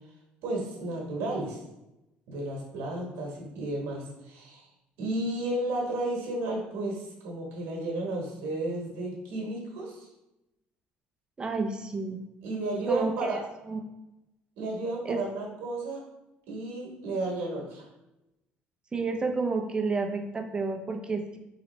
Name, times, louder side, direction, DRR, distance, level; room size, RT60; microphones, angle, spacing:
voice 1, 0.4-1.6 2.3-4.7 5.0-10.1 12.4-13.4 14.6-16.0 16.5-17.9, right 2 dB, 80° right, -2 dB, 1.1 m, -33 dB
voice 2, 11.4-12.2 12.9-13.4 13.7-13.8 15.0-15.2 18.9-21.4, right 3 dB, 25° right, 4 dB, 0.6 m, -30 dB
3.9 x 3.0 x 3.1 m, 0.93 s
cardioid pair, 100°, 4 cm